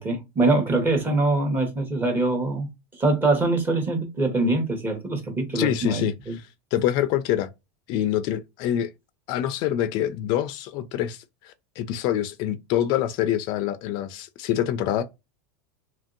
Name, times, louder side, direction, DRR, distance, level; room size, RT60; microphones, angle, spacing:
voice 1, 0.0-2.7 2.9-6.4, right 2 dB, 20° right, 1.0 m, -23 dB
voice 2, 5.5-6.1 6.7-7.5 7.9-8.9 9.3-15.0, left 11 dB, 50° left, 0.3 m, -25 dB
2.9 x 2.6 x 2.5 m
supercardioid pair, 135°, 10 cm